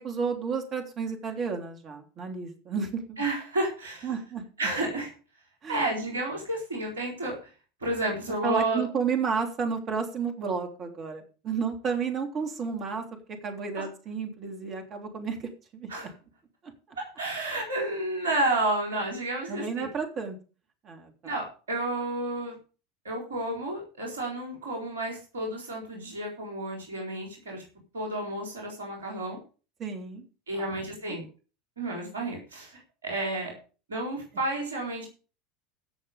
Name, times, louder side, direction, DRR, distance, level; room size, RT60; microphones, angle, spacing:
voice 1, 0.0-3.2 4.0-4.4 5.6-5.9 8.4-13.0 13.4-15.9 19.5-20.4 20.8-21.3 29.8-30.3 30.5-30.8 31.1-31.2, right 5 dB, 35° right, 5 dB, 3.3 m, -32 dB
voice 2, 3.2-4.1 4.6-5.1 5.7-7.5 7.8-8.8 13.7-13.9 15.9-16.1 17.0-19.8 21.2-22.6 23.0-27.6 27.9-29.4 30.5-31.2 31.8-33.6 33.9-35.1, right 2 dB, 75° right, 0 dB, 4.1 m, -31 dB
16.5 x 6.7 x 5.1 m, 0.35 s
figure-of-eight pair, 80°, 0 cm